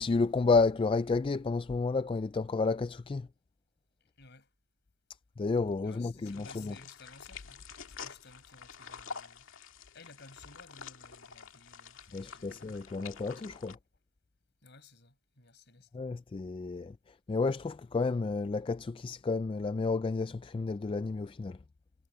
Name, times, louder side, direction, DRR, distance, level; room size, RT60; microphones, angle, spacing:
voice 1, 0.0-3.3 5.4-6.7 12.1-13.8 15.9-21.6, left 4 dB, 25° left, 0.3 m, -31 dB
voice 2, 4.2-4.5 5.8-9.5 9.9-12.6 14.6-15.9, left 3 dB, 55° left, 6.0 m, -56 dB
sound 1, 6.3-13.8, left 6 dB, 75° left, 2.1 m, -48 dB
head